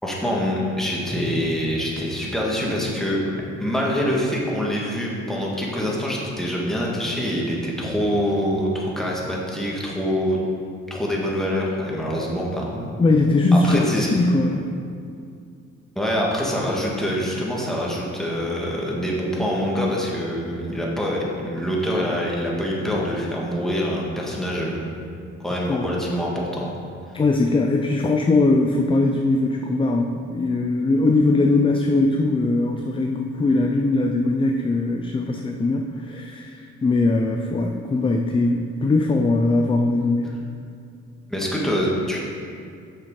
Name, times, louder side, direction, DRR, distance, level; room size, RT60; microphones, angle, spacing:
voice 1, 0.0-3.2 3.6-10.4 10.9-12.9 13.5-14.1 15.9-24.8 25.4-26.7 41.3-42.2, equal, ahead, -4 dB, 1.6 m, -25 dB
voice 2, 13.0-14.7 25.7-25.8 27.1-40.4, left 2 dB, 20° left, 3 dB, 0.4 m, -20 dB
6.7 x 6.2 x 4.8 m, 2.4 s
cardioid pair, 90°, 30 cm